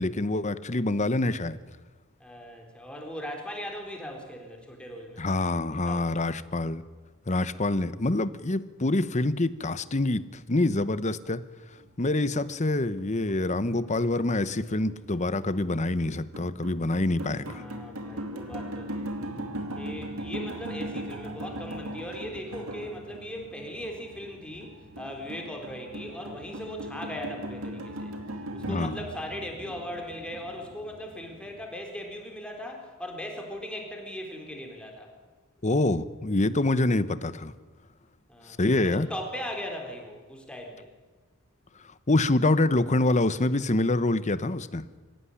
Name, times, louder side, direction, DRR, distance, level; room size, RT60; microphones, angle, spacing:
voice 1, 0.0-1.6 5.2-6.8 7.3-11.4 12.0-17.6 28.6-29.0 35.6-37.5 38.6-39.1 42.1-44.8, left 2 dB, 35° left, 14 dB, 0.9 m, -26 dB
voice 2, 2.2-5.2 5.7-6.2 17.5-19.1 19.7-28.1 28.5-35.1 38.3-38.6 38.8-40.9, equal, 5° left, 1 dB, 3.9 m, -39 dB
sound 1, 11.8-31.6, right 1 dB, 75° right, 2.5 m, -39 dB
25.5 x 16.0 x 10.0 m, 1.3 s
head